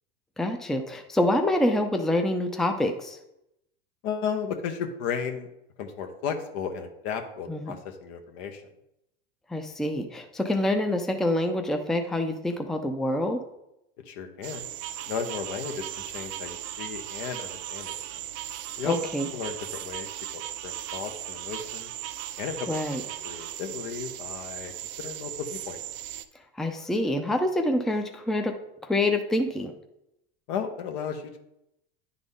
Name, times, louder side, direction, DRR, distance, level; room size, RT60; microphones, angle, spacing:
voice 1, 0.4-3.2 7.5-7.7 9.5-13.4 18.8-19.3 22.7-23.0 26.6-28.6 28.8-29.7, left 1 dB, ahead, 5 dB, 0.6 m, -26 dB
voice 2, 4.0-5.5 5.8-8.6 14.1-14.7 15.1-18.0 18.8-19.0 19.3-19.5 19.8-20.1 20.3-21.9 22.4-22.7 23.2-24.7 25.0-25.8 30.5-31.4, left 7 dB, 65° left, 5 dB, 1.1 m, -34 dB
sound 1, 14.4-26.3, right 12 dB, 55° right, 0.6 m, -37 dB
9.8 x 3.9 x 3.6 m, 0.84 s
hypercardioid pair, 95°, 30 cm